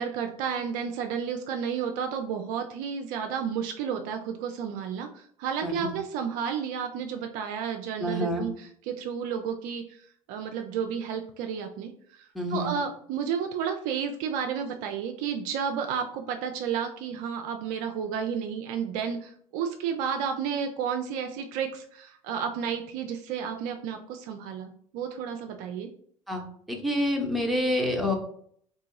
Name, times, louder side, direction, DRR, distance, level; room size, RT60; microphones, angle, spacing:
voice 1, 0.0-10.0 10.3-25.9, right 7 dB, 50° right, 5 dB, 0.4 m, -32 dB
voice 2, 8.0-8.5 12.3-12.7 26.3-26.4 26.7-28.1, left 1 dB, ahead, 0 dB, 0.9 m, -27 dB
2.8 x 2.7 x 3.6 m, 0.63 s
figure-of-eight pair, 65°, 18 cm